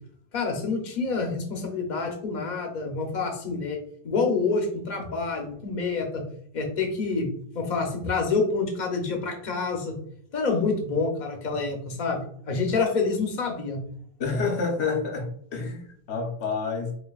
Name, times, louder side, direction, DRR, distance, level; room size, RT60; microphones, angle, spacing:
voice 1, 0.3-3.8 4.0-6.2 6.5-7.3 7.5-9.9 10.3-12.2 12.5-13.8, left 4 dB, 50° left, 2 dB, 0.9 m, -27 dB
voice 2, 14.2-17.0, left 4 dB, 90° left, 1 dB, 1.1 m, -28 dB
5.0 x 2.5 x 2.3 m, 0.62 s
omnidirectional pair, 1.1 m